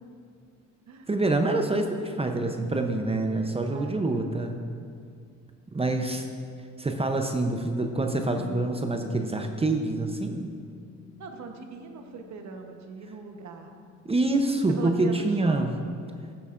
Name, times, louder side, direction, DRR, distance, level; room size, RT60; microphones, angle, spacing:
voice 1, 1.1-4.5 5.7-6.3 6.8-10.5 14.1-15.7, right 2 dB, 20° right, 4 dB, 0.7 m, -26 dB
voice 2, 3.7-4.4 11.2-13.7 14.7-15.9, right 4 dB, 70° right, 4 dB, 1.1 m, -41 dB
Bass guitar, 8.3-14.6, left 12 dB, 70° left, 0.7 m, -48 dB
15.0 x 8.0 x 2.5 m, 2.2 s
cardioid pair, 90°, 30 cm